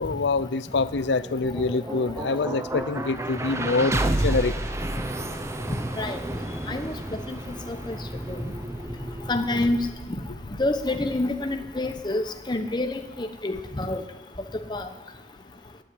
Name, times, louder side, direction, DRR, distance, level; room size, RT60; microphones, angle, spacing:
voice 1, 0.0-4.5, left 3 dB, 75° left, 16 dB, 0.5 m, -25 dB
sound 1, 1.0-13.0, right 1 dB, 15° right, 0.7 m, -32 dB
voice 2, 6.7-7.4 7.7-8.0 8.3-8.4 9.3-9.9 10.6-14.0 14.7-14.9, left 2 dB, 25° left, 6 dB, 1.0 m, -28 dB
11.5 x 8.9 x 9.9 m, 1.1 s
head